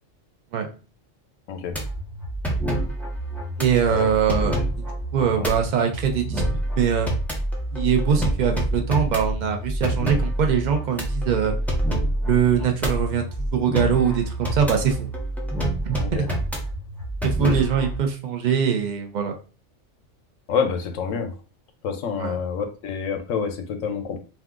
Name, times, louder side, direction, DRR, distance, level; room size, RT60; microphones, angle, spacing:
sound 1, 1.7-18.0, right 1 dB, ahead, 0.4 m, -27 dB
voice 1, 3.6-4.6 5.1-6.4 6.8-7.1 7.7-11.6 12.3-15.1 15.9-16.3 17.2-19.3 22.2-22.4, right 7 dB, 50° right, 4 dB, 0.6 m, -22 dB
voice 2, 20.5-21.3 21.8-24.2, left 6 dB, 85° left, 7 dB, 1.0 m, -27 dB
2.7 x 2.3 x 3.6 m, 0.35 s
omnidirectional pair, 1.3 m